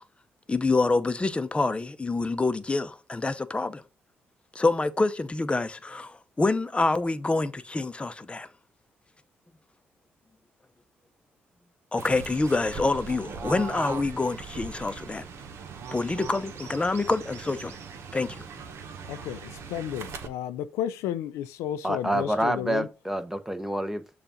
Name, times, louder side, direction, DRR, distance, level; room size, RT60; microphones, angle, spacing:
voice 1, 0.5-3.8 4.5-8.5 11.9-15.3 15.9-17.8 18.1-18.4, left 3 dB, 25° left, 0.7 m, -26 dB
Fowl / Bird, 12.0-20.3, right 5 dB, 70° right, 0.9 m, -40 dB
voice 2, 19.1-22.9, left 11 dB, 90° left, 0.3 m, -32 dB
voice 3, 21.8-24.0, right 1 dB, 5° right, 0.8 m, -27 dB
6.8 x 2.5 x 5.6 m
supercardioid pair, 60°, 5 cm